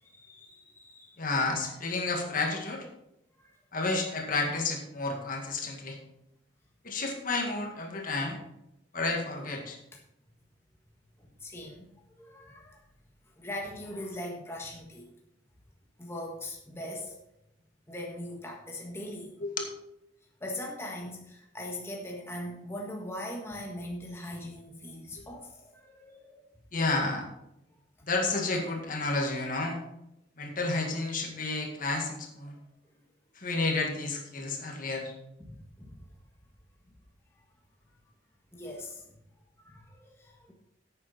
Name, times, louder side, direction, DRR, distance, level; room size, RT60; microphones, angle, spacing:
voice 1, 0.0-1.2 3.4-3.6 9.9-10.0 11.2-11.9 12.2-12.8 13.4-15.1 16.0-17.2 17.9-19.3 20.4-26.5 35.4-36.1 38.5-39.0 39.6-40.5, left 1 dB, 15° left, -1 dB, 1.5 m, -41 dB
voice 2, 1.2-2.9 3.7-6.0 6.8-8.4 8.9-9.8 19.4-19.7 26.7-27.3 28.1-29.8 30.4-32.5 33.4-35.1, left 3 dB, 45° left, 2 dB, 1.9 m, -31 dB
10.5 x 8.8 x 4.3 m, 0.84 s
head